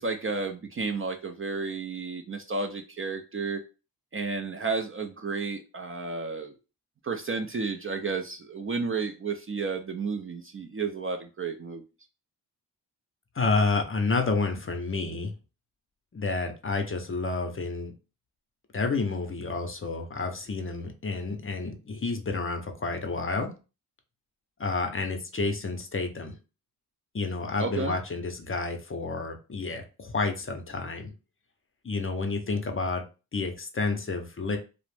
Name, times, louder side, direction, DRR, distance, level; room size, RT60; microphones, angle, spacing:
voice 1, 0.0-3.6 4.1-6.5 7.0-11.8 27.6-28.0, right 4 dB, 35° right, 5 dB, 0.4 m, -32 dB
voice 2, 13.3-15.3 16.1-17.9 18.7-23.5 24.6-26.4 27.1-31.1 31.8-33.0 33.3-34.6, left 3 dB, 30° left, 5 dB, 0.6 m, -30 dB
2.4 x 2.0 x 3.2 m, 0.32 s
cardioid pair, 50°, 41 cm